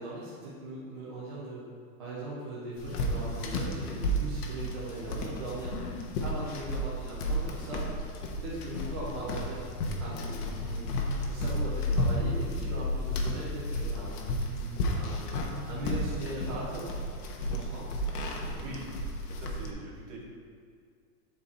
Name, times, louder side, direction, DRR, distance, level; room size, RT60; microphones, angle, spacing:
voice 1, 0.0-1.6 2.0-5.7 6.2-16.9 17.5-17.9, right 2 dB, 20° right, -8 dB, 0.3 m, -40 dB
sound 1, 2.8-19.7, left 1 dB, 75° left, 1.1 m, -32 dB
voice 2, 18.5-18.9 19.3-20.2, right 3 dB, 35° right, -3 dB, 1.5 m, -44 dB
8.6 x 4.5 x 4.1 m, 2.1 s
supercardioid pair, 165°, 46 cm